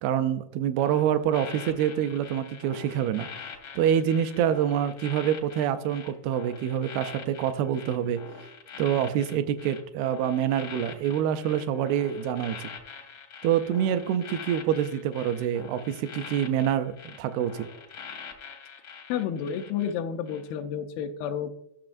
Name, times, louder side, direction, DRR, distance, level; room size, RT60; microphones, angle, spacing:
voice 1, 0.0-3.3 3.8-8.2 8.8-12.7 13.4-17.7, right 9 dB, 85° right, 11 dB, 2.2 m, -26 dB
sound 1, 0.8-19.9 20.3-20.5, left 6 dB, 65° left, 1.3 m, -44 dB
voice 2, 19.1-21.5, left 8 dB, 85° left, 3 dB, 2.1 m, -30 dB
13.0 x 7.0 x 2.5 m, 0.78 s
omnidirectional pair, 4.8 m